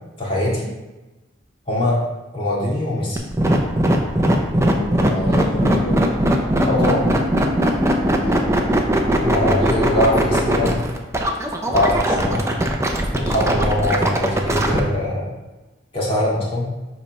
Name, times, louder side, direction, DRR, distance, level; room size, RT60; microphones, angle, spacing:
voice 1, 0.2-0.7 1.7-2.0 2.3-3.2 4.9-5.3 6.6-7.1 9.2-10.8 11.7-12.5 13.1-15.3 15.9-16.7, left 1 dB, 30° left, -6 dB, 2.0 m, -22 dB
sound 1, 3.2-14.8, right 1 dB, 15° right, 0.6 m, -19 dB
voice 2, 4.6-6.1 8.1-8.7, left 1 dB, 55° left, -3 dB, 0.8 m, -28 dB
5.1 x 4.2 x 5.5 m, 1.1 s
head